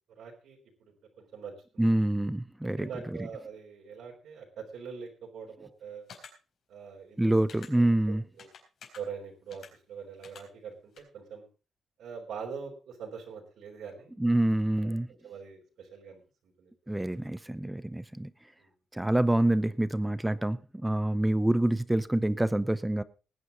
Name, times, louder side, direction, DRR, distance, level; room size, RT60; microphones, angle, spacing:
voice 1, 0.2-0.6 1.2-1.9 2.6-6.0 6.7-7.4 7.7-7.8 8.4-8.5 9.0-11.4 12.0-14.1 14.8-14.9 15.2-16.2 16.6-16.7 18.6-18.7, right 6 dB, 75° right, -1 dB, 3.7 m, -43 dB
voice 2, 1.8-2.9 7.2-8.2 14.2-15.1 16.9-18.3 18.9-23.0, right 1 dB, 5° right, 15 dB, 0.6 m, -26 dB
sound 1, 6.1-6.3 7.5-7.7 8.4-9.0 9.5-9.7 10.2-10.4 11.0-11.1, left 6 dB, 55° left, 4.1 m, -48 dB
19.5 x 9.5 x 3.9 m, 0.34 s
cardioid pair, 160°, 0 cm